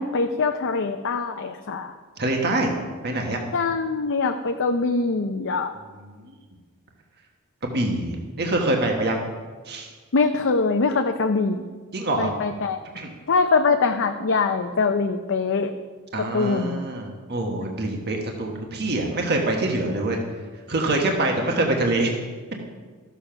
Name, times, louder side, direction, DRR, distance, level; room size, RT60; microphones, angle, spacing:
voice 1, 0.0-1.9 3.5-5.7 10.1-11.6 12.2-12.8 13.3-15.7 16.3-16.8, left 4 dB, 55° left, 5 dB, 0.6 m, -23 dB
voice 2, 2.2-2.7 3.0-3.4 5.9-6.1 7.6-9.2 9.7-9.9 11.9-12.3 12.9-13.1 16.1-20.2 20.7-22.1, right 2 dB, 50° right, 1 dB, 1.4 m, -25 dB
13.5 x 7.1 x 5.8 m, 1.5 s
head